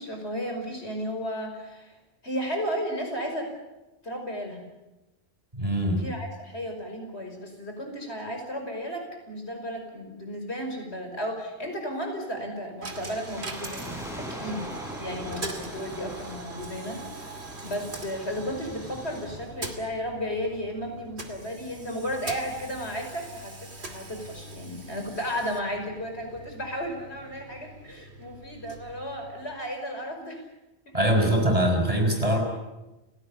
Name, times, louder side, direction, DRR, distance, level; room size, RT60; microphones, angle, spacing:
voice 1, 0.0-1.9 2.2-3.5 4.0-4.6 6.0-13.8 14.2-14.6 15.0-30.4 30.9-31.0, equal, 70° left, 4 dB, 5.7 m, -34 dB
voice 2, 5.5-6.0 30.9-32.4, right 1 dB, 30° right, 3 dB, 5.6 m, -23 dB
Coin (dropping), 12.8-29.7, right 2 dB, 70° right, 2.9 m, -42 dB
sound 1, 13.3-20.6 20.8-20.9 21.6-23.4 23.7-23.8 24.0-24.3 24.8-24.9, equal, ahead, 5.9 m, -42 dB
30.0 x 18.0 x 8.6 m, 1.0 s
omnidirectional pair, 1.1 m